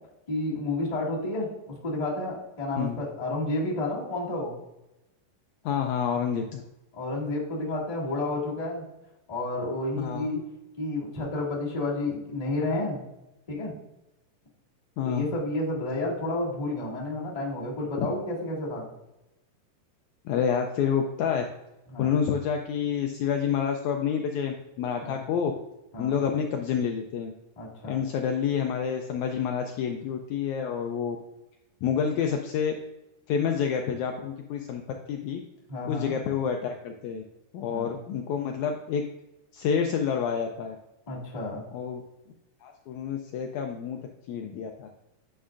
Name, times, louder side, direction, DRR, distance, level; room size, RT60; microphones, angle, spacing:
voice 1, 0.3-1.5 1.8-4.5 6.9-8.8 9.3-10.4 10.8-13.0 13.5-13.7 15.0-18.9 21.9-22.2 25.0-25.2 25.9-26.2 27.5-28.0 35.7-36.1 37.7-38.0 41.1-41.7, left 2 dB, 20° left, -6 dB, 1.1 m, -31 dB
voice 2, 5.6-6.6 10.0-10.3 15.0-15.3 18.0-18.1 20.2-21.5 22.0-25.5 26.0-27.3 27.8-31.2 31.8-32.8 33.3-34.8 35.1-35.4 35.8-37.2 37.5-39.0 39.5-40.7 41.7-42.0 42.6-44.0 44.3-44.9, left 7 dB, 90° left, 3 dB, 1.6 m, -28 dB
9.5 x 6.2 x 2.5 m, 0.95 s
omnidirectional pair, 4.0 m